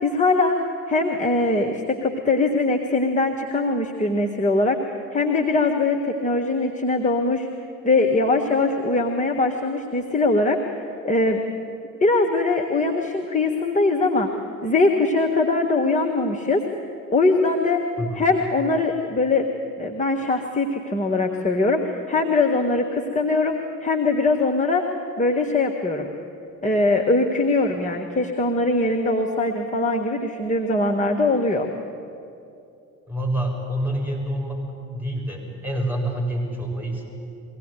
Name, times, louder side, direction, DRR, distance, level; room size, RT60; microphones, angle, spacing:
voice 1, 0.0-0.5 0.9-4.8 5.1-7.5 7.8-10.6 11.0-11.4 12.0-14.3 14.6-16.6 17.1-17.8 18.1-19.4 19.8-24.8 25.2-26.1 26.6-31.7, left 3 dB, 20° left, 3 dB, 1.7 m, -21 dB
voice 2, 33.1-34.6 34.9-37.0, right 1 dB, 5° right, 0 dB, 7.5 m, -27 dB
23.0 x 17.0 x 9.4 m, 2.7 s
figure-of-eight pair, 50°, 40 cm